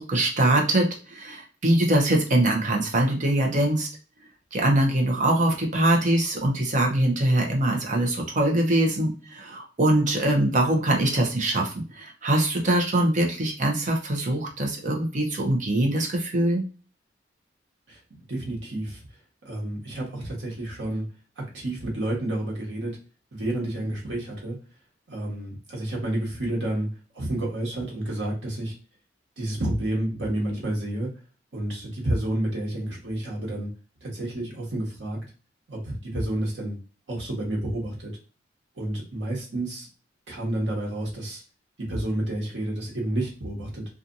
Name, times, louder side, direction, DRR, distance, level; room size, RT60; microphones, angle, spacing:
voice 1, 0.0-3.9 4.5-16.6, right 1 dB, 45° right, 1 dB, 0.7 m, -23 dB
voice 2, 18.3-19.0 19.4-21.0 21.5-23.0 23.3-24.6 25.1-26.9 27.1-28.7 29.4-31.1 31.5-33.7 34.0-35.2 35.7-36.8 37.1-38.1 38.8-39.9 40.3-41.4 41.9-43.8, right 1 dB, 90° right, -3 dB, 1.2 m, -30 dB
2.7 x 2.4 x 2.5 m, 0.36 s
head